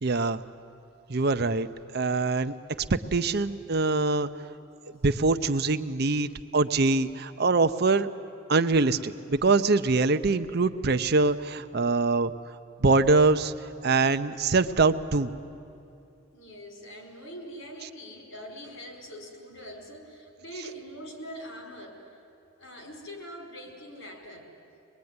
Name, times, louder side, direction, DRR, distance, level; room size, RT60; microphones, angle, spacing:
voice 1, 0.0-0.4 1.1-1.7 1.9-2.5 2.9-4.3 5.0-8.1 8.5-12.3 12.8-13.5 13.8-15.3, right 3 dB, 50° right, 10 dB, 0.7 m, -23 dB
voice 2, 16.3-22.0 22.6-24.5, equal, 70° left, 2 dB, 5.0 m, -43 dB
24.0 x 21.0 x 9.6 m, 2.7 s
head